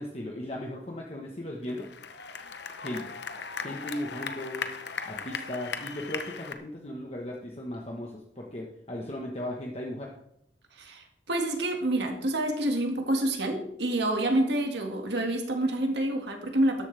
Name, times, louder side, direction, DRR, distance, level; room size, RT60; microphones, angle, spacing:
voice 1, 0.0-1.9 2.8-3.0 3.6-4.7 5.0-10.1, left 1 dB, 35° left, -1 dB, 1.3 m, -37 dB
sound 1, 1.6-6.5, left 5 dB, 65° left, 0.9 m, -38 dB
voice 2, 10.7-16.8, right 1 dB, 65° right, 3 dB, 2.1 m, -28 dB
13.5 x 11.5 x 3.5 m, 0.75 s
head